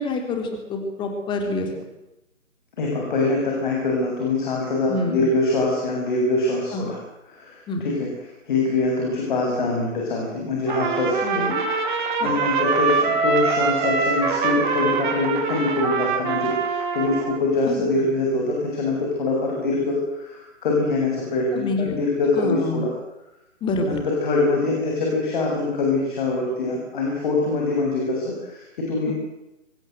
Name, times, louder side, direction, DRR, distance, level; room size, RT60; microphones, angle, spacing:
voice 1, 0.0-1.7 4.9-5.3 6.7-6.9 7.7-7.8 11.2-11.6 12.2-12.3 17.7-17.8 21.5-22.0 22.3-22.8 23.6-24.0 29.1-29.2, left 3 dB, 10° left, 4 dB, 3.5 m, -27 dB
voice 2, 2.8-7.0 7.3-8.1 8.5-11.4 12.2-22.9 23.8-29.1, left 3 dB, 40° left, -1 dB, 7.3 m, -24 dB
Trumpet, 10.7-17.4, right 5 dB, 40° right, 3.8 m, -24 dB
24.5 x 20.5 x 8.0 m, 0.92 s
figure-of-eight pair, 145°, 38 cm